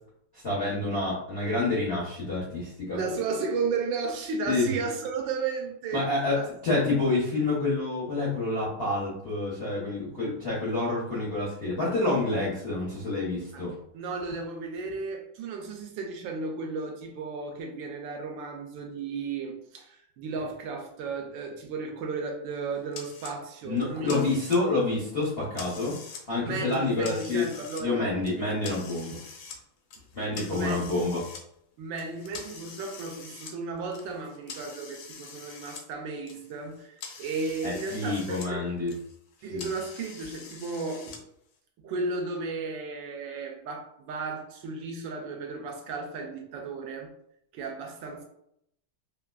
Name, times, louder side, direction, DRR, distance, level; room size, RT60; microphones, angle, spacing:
voice 1, 0.3-3.0 4.5-4.7 5.9-13.7 23.6-26.0 26.3-27.5 27.8-29.2 30.1-31.2 37.6-38.9 39.5-39.7, left 2 dB, 60° left, 0.6 m, -28 dB
voice 2, 2.9-6.1 6.3-6.5 13.5-13.7 13.9-24.3 26.4-28.1 30.5-30.9 31.8-38.7 39.4-41.2 41.8-47.1 47.5-48.2, right 4 dB, 75° right, 1.2 m, -34 dB
sound 1, 22.9-23.3 23.8-24.8 25.2-26.2 26.6-27.8 28.2-29.6 29.9-31.4 32.0-35.8 36.1-38.5 38.8-41.2, left 5 dB, 80° left, 1.4 m, -45 dB
3.4 x 2.4 x 2.2 m
omnidirectional pair, 2.2 m